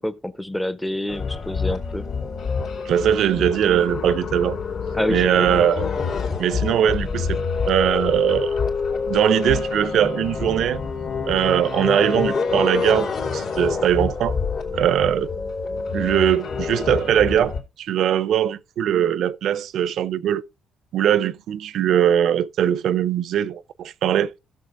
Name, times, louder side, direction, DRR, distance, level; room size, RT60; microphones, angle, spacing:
voice 1, 0.0-2.0 4.9-5.5, left 1 dB, 5° left, 0.7 m, -28 dB
sound 1, 1.1-17.6, left 5 dB, 65° left, 3.0 m, -27 dB
voice 2, 2.9-4.6 5.1-5.8 6.4-7.4 7.7-8.5 9.1-10.8 11.2-14.4 14.7-15.3 15.9-20.4 20.9-24.4, right 10 dB, 70° right, 0.6 m, -21 dB
16.0 x 6.8 x 2.5 m
cardioid pair, 125°, 0 cm